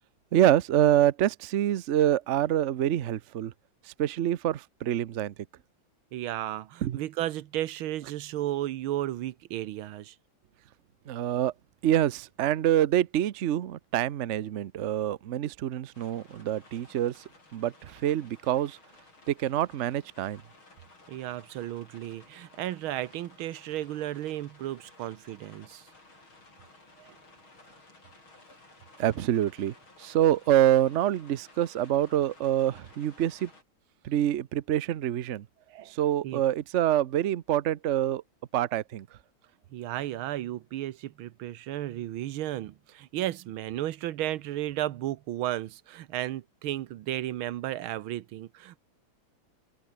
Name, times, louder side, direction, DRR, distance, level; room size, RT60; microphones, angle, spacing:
voice 1, 0.3-3.5 3.8-5.3 6.8-7.0 11.1-11.5 11.8-17.2 17.5-18.8 19.3-20.4 29.0-33.5 34.0-35.5 35.9-38.2 38.5-39.1, right 12 dB, 65° right, 0.7 m, -26 dB
voice 2, 6.1-10.2 21.1-25.9 27.0-27.2 35.7-35.9 36.2-36.4 39.7-48.8, right 13 dB, 90° right, 1.7 m, -34 dB
sound 1, 15.9-33.6, left 2 dB, 85° left, 8.9 m, -56 dB
omnidirectional pair, 2.2 m